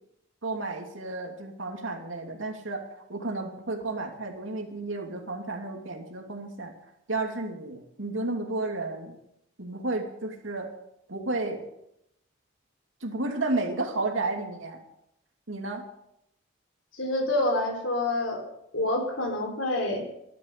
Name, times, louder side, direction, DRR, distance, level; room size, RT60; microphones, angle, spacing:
voice 1, 0.4-2.8 3.1-6.7 7.1-9.2 9.6-10.7 11.1-11.6 13.0-14.8 15.5-15.8, right 2 dB, 80° right, 3 dB, 2.7 m, -32 dB
voice 2, 17.0-18.4 18.7-20.1, left 1 dB, 85° left, 3 dB, 3.9 m, -27 dB
13.5 x 11.5 x 6.8 m, 0.80 s
head